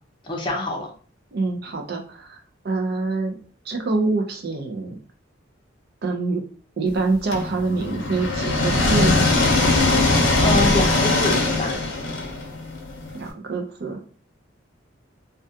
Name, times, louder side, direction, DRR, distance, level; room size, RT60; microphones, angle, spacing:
voice 1, 0.3-0.9 10.4-11.8, left 1 dB, 25° left, -1 dB, 0.5 m, -25 dB
voice 2, 1.3-2.4 2.6-3.4 3.7-5.0 6.0-6.4 6.8-9.3 13.2-14.0, right 3 dB, 55° right, 4 dB, 0.5 m, -25 dB
sound 1, 7.3-13.2, left 2 dB, 80° left, 0.6 m, -20 dB
2.4 x 2.2 x 2.6 m, 0.42 s
head